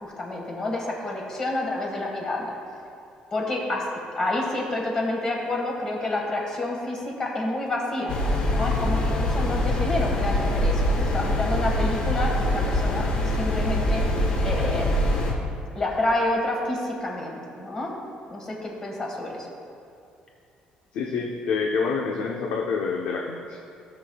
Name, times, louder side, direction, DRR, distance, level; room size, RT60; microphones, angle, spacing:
voice 1, 0.0-2.5 3.3-3.8 4.2-8.1 8.5-13.1 13.4-14.0 14.4-15.1 15.7-17.9 18.3-19.5, left 2 dB, 25° left, -1 dB, 1.6 m, -28 dB
sound 1, 8.1-15.3, left 1 dB, 50° left, 1.2 m, -24 dB
voice 2, 20.9-23.6, left 5 dB, 90° left, -1 dB, 0.8 m, -27 dB
16.5 x 7.1 x 2.3 m, 2.5 s
cardioid pair, 180°, 3 cm